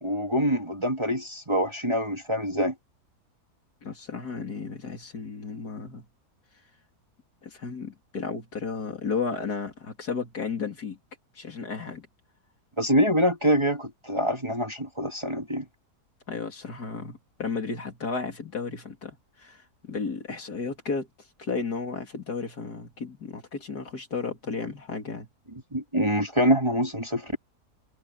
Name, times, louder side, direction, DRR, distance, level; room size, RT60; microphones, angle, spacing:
voice 1, 0.0-2.7 12.8-15.7 25.7-27.4, equal, 20° right, 1.7 m, -25 dB
voice 2, 3.8-6.1 7.4-11.0 11.4-12.1 16.3-21.1 21.4-25.3, left 4 dB, 75° left, 3.6 m, -33 dB
omnidirectional pair, 1.7 m